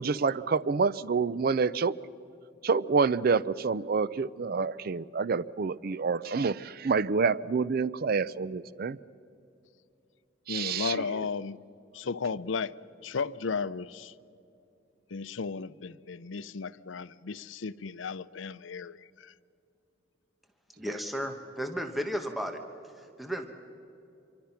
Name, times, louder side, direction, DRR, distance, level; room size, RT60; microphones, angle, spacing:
voice 1, 0.0-1.9 2.6-9.0 10.5-11.3 20.9-21.0, right 5 dB, 50° right, 0.5 m, -28 dB
voice 2, 10.5-11.6 11.9-14.1 15.1-19.3, left 5 dB, 80° left, 0.6 m, -35 dB
voice 3, 20.8-22.6 23.0-23.5, equal, ahead, 1.1 m, -34 dB
26.5 x 24.0 x 5.8 m
head